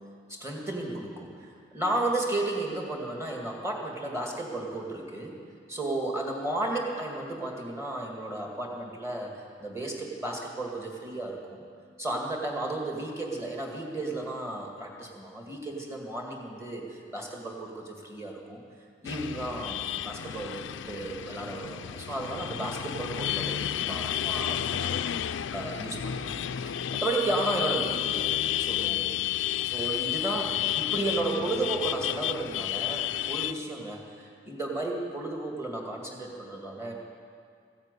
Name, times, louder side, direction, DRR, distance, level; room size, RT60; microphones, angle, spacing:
voice 1, 0.3-5.3 5.7-9.3 9.6-11.6 12.0-18.6 19.0-28.3 28.6-36.9, right 2 dB, 15° right, 0 dB, 2.2 m, -34 dB
sound 1, 19.1-33.5, left 11 dB, 80° left, 0.4 m, -31 dB
15.5 x 9.5 x 8.3 m, 2.2 s
head